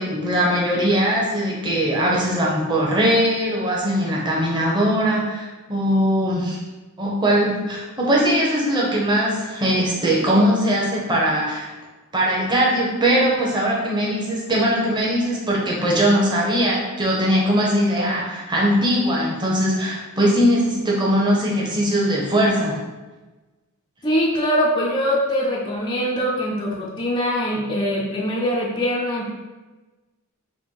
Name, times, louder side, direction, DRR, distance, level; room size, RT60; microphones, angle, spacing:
voice 1, 0.0-6.6 7.0-11.7 12.1-22.8, equal, 20° right, -4 dB, 1.0 m, -20 dB
voice 2, 24.0-29.3, equal, 20° left, -3 dB, 0.5 m, -22 dB
4.3 x 2.2 x 4.6 m, 1.2 s
head